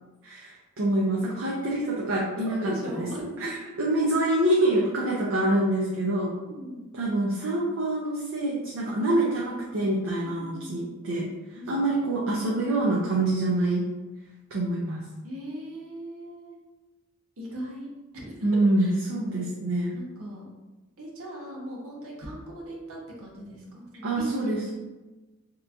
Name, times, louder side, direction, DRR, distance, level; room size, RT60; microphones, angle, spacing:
voice 1, 0.2-3.1 3.4-6.3 6.9-11.3 11.7-13.8 14.5-15.0 18.4-20.0 24.0-24.7, right 1 dB, 65° right, -4 dB, 0.5 m, -26 dB
voice 2, 2.6-3.3 6.4-6.9 10.2-11.0 11.5-11.8 15.2-16.6 17.4-17.9 18.1-18.5 18.8-18.9 19.9-20.5 21.0-24.7, right 1 dB, 80° right, -2 dB, 0.9 m, -39 dB
2.9 x 2.5 x 3.4 m, 1.2 s
head